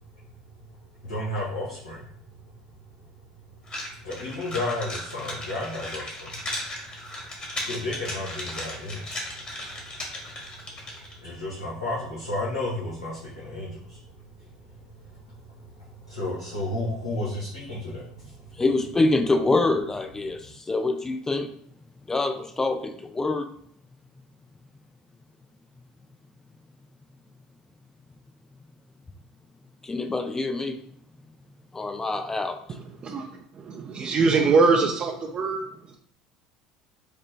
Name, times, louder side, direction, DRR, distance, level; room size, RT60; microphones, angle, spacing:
voice 1, 1.0-2.1 4.0-6.4 7.6-9.2 11.2-14.0 14.4-14.8 15.0-15.5 15.8-18.5 20.4-20.5, left 2 dB, 90° left, -8 dB, 1.2 m, -32 dB
sound 1, 3.7-11.2, left 1 dB, 35° left, 1.6 m, -36 dB
voice 2, 18.6-21.5 22.1-23.5 29.8-30.8 31.7-32.6, left 2 dB, 20° left, 7 dB, 0.4 m, -25 dB
voice 3, 33.9-35.6, right 4 dB, 40° right, 2 dB, 0.4 m, -21 dB
5.0 x 2.2 x 3.2 m, 0.65 s
hypercardioid pair, 70°, 3 cm